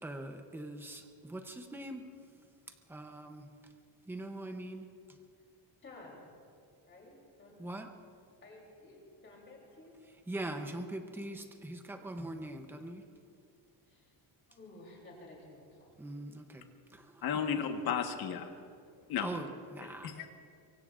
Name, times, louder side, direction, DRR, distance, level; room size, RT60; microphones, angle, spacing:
voice 1, 0.0-2.1 2.7-3.5 4.1-5.2 7.6-7.9 10.3-13.0 16.0-17.5 19.2-20.1, right 1 dB, 5° right, 5 dB, 0.7 m, -42 dB
voice 2, 5.8-6.3 6.9-7.6 8.4-9.9 12.0-12.2 13.9-14.1 14.5-15.9, left 2 dB, 25° left, -2 dB, 3.3 m, -54 dB
voice 3, 17.2-18.5 19.1-19.3 20.0-20.3, left 7 dB, 45° left, 5 dB, 1.4 m, -33 dB
24.0 x 23.5 x 2.5 m, 2.4 s
cardioid pair, 175°, 50 cm